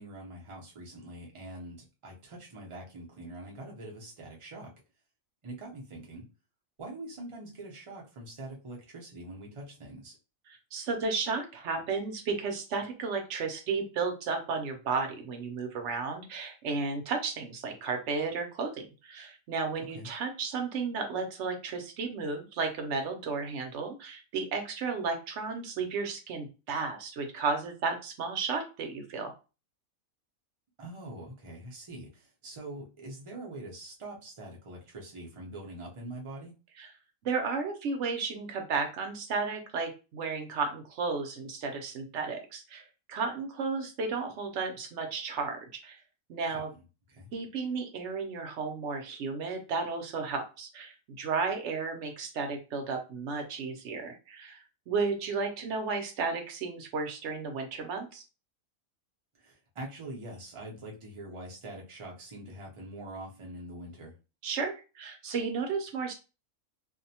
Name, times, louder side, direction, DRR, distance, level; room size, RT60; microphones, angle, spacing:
voice 1, 0.0-4.7 5.4-6.3 6.8-10.2 19.9-20.1 30.8-36.5 46.5-46.6 47.1-47.3 59.4-64.1, right 1 dB, 35° right, -2 dB, 0.5 m, -44 dB
voice 2, 10.5-29.3 36.8-36.9 37.2-46.0 46.3-46.7 47.3-58.2 64.4-66.1, right 4 dB, 65° right, 5 dB, 0.8 m, -33 dB
2.6 x 2.1 x 2.7 m, 0.31 s
omnidirectional pair, 1.5 m